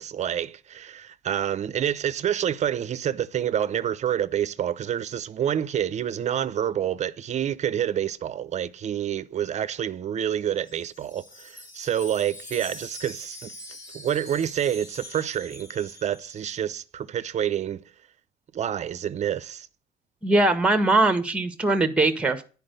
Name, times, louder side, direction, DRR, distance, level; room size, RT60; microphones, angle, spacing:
voice 1, 0.0-13.5 13.9-17.8 18.5-19.7, right 10 dB, 45° right, 0.6 m, -28 dB
Wind chime, 10.4-16.6, left 1 dB, 20° left, 2.0 m, -44 dB
voice 2, 20.2-22.4, right 2 dB, 5° right, 1.3 m, -21 dB
9.9 x 4.6 x 6.6 m
cardioid pair, 110°, 17 cm